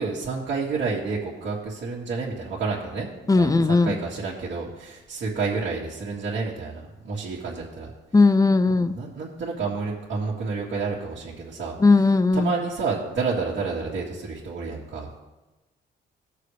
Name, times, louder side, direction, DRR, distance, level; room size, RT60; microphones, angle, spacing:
voice 1, 0.0-3.1 3.3-7.9 8.7-12.1 12.3-15.1, right 4 dB, 70° right, -7 dB, 2.1 m, -30 dB
voice 2, 3.3-3.9 8.1-9.0 11.8-12.5, left 3 dB, 15° left, 12 dB, 0.6 m, -18 dB
17.5 x 6.8 x 3.3 m, 1.1 s
cardioid pair, 90°, 20 cm